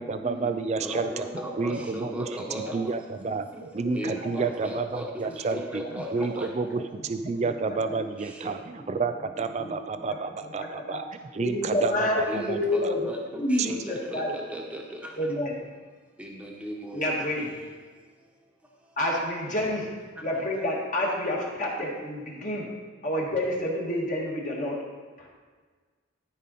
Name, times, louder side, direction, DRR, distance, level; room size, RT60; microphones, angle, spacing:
voice 1, 0.0-1.3 1.6-11.0 11.3-12.6 13.6-13.8, right 4 dB, 35° right, 9 dB, 0.3 m, -30 dB
voice 2, 0.8-2.8 3.8-5.0 5.5-6.5 8.4-8.5 12.3-14.8 16.2-17.0, equal, 5° right, -1 dB, 1.1 m, -36 dB
voice 3, 7.4-8.1 9.6-9.7 10.1-11.0 11.4-13.0 13.4-14.3 15.2-15.5 16.9-17.6 19.0-20.0 20.2-22.7 23.0-24.9 25.2-25.3, left 1 dB, 40° left, -2 dB, 1.7 m, -29 dB
13.0 x 5.2 x 4.2 m, 1.5 s
head